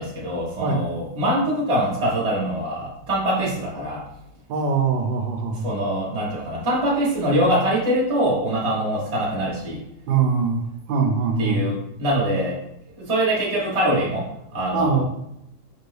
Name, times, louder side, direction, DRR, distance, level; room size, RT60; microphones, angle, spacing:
voice 1, 0.0-4.0 5.5-9.8 11.4-12.6 13.0-15.0, right 1 dB, 25° right, -5 dB, 0.9 m, -23 dB
voice 2, 4.5-5.7 10.1-11.7 14.7-15.0, right 5 dB, 80° right, 3 dB, 1.3 m, -22 dB
4.7 x 2.5 x 3.2 m, 0.79 s
omnidirectional pair, 2.1 m